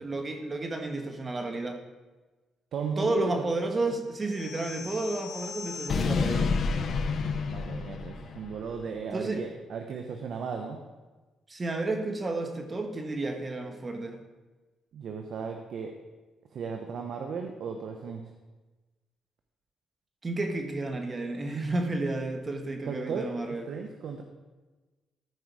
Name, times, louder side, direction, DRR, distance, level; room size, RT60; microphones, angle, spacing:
voice 1, 0.0-1.8 3.0-6.5 9.1-9.4 11.5-14.2 20.2-23.7, right 2 dB, 30° right, 4 dB, 1.5 m, -31 dB
voice 2, 2.7-3.3 7.4-10.8 14.9-15.9 16.5-18.2 22.8-24.2, right 5 dB, 65° right, 4 dB, 0.9 m, -35 dB
sound 1, 4.3-8.6, left 4 dB, 60° left, 0.7 m, -30 dB
14.0 x 4.9 x 4.8 m, 1.2 s
cardioid pair, 90°, 0 cm